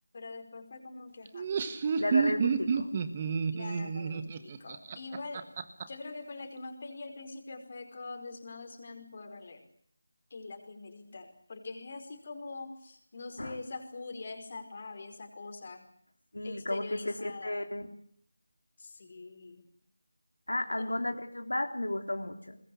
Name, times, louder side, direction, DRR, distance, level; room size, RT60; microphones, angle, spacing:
voice 1, 0.1-1.5 3.5-5.5 5.9-9.6 10.3-15.9 16.4-17.6 18.8-19.6 20.8-20.9, left 3 dB, 40° left, 6 dB, 5.0 m, -44 dB
Laughter, 1.3-5.8, right 5 dB, 25° right, 1.6 m, -30 dB
voice 2, 2.0-2.9 13.4-13.5 16.3-17.9 20.5-22.6, left 1 dB, 90° left, 4 dB, 3.3 m, -33 dB
23.5 x 21.0 x 8.5 m, 0.63 s
figure-of-eight pair, 165°, 0 cm